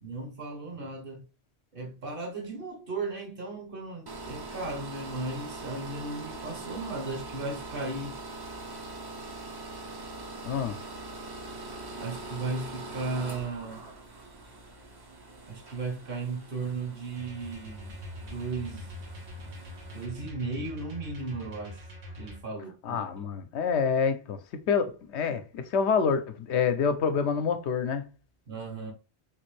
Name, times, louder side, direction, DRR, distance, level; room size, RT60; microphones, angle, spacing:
voice 1, 0.0-1.3 1.7-8.1 12.0-13.8 15.5-18.9 19.4-19.5 19.9-21.8 22.2-23.3 28.5-28.9, right 3 dB, 55° right, 1.2 m, -36 dB
sound 1, 4.1-20.1, right 2 dB, 30° right, 0.4 m, -43 dB
voice 2, 10.4-10.8 22.8-28.0, left 6 dB, 80° left, 0.9 m, -27 dB
sound 2, 17.1-22.4, left 1 dB, 80° right, 1.3 m, -43 dB
3.5 x 2.5 x 3.1 m
omnidirectional pair, 1.1 m